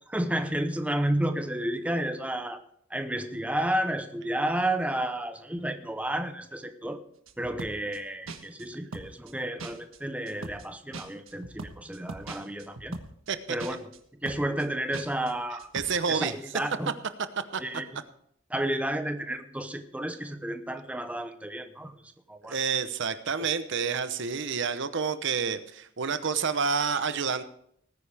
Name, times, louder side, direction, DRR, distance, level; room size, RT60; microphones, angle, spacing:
voice 1, 0.1-2.6 2.9-7.0 7.4-13.0 13.5-13.9 14.2-15.7 16.1-16.9 17.6-17.8 18.5-21.9 22.3-22.6, right 1 dB, 5° right, 8 dB, 0.8 m, -31 dB
sound 1, 7.3-8.0 8.3-8.7 8.9-9.3 9.6-10.0 10.3-10.7 10.9-13.3 13.6-14.0 14.3-14.7 14.9-15.3 15.6-15.9, right 3 dB, 85° right, 1.4 m, -41 dB
voice 2, 15.7-16.3 17.5-17.6 22.4-27.4, right 6 dB, 60° right, 12 dB, 0.8 m, -28 dB
18.5 x 9.9 x 3.4 m, 0.68 s
head